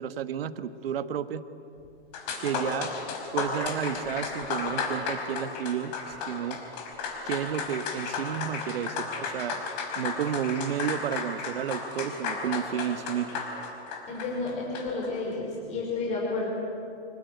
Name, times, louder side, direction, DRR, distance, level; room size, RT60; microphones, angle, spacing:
voice 1, 0.0-1.4 2.4-2.9 3.3-6.6 7.2-9.6 10.0-13.3, right 9 dB, 60° right, 11 dB, 1.5 m, -31 dB
sound 1, 1.8-1.9 2.1-15.1, left 5 dB, 35° left, 5.0 m, -34 dB
voice 2, 14.1-16.5, left 3 dB, 20° left, -2 dB, 5.4 m, -31 dB
26.0 x 22.0 x 9.6 m, 2.7 s
hypercardioid pair, 155°, 33 cm